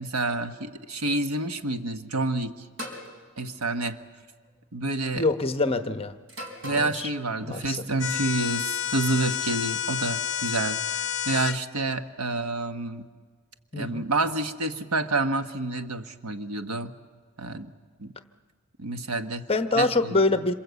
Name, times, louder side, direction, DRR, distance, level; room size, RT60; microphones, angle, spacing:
voice 1, 0.0-2.6 3.4-4.0 4.7-5.3 6.6-13.1 13.8-16.9 17.4-17.7 18.0-18.1 18.8-19.5 19.8-20.2, right 2 dB, 80° right, 8 dB, 1.3 m, -28 dB
sound 1, 2.8-3.1 4.3-4.6 6.3-7.0, left 1 dB, 60° right, 4.4 m, -38 dB
voice 2, 5.1-6.2 6.7-7.1 7.4-7.8 13.7-14.1 19.5-20.5, left 3 dB, 25° left, 9 dB, 0.9 m, -25 dB
sound 2, 8.0-11.6, left 10 dB, 55° left, 0.8 m, -29 dB
27.0 x 26.5 x 8.2 m, 1.5 s
head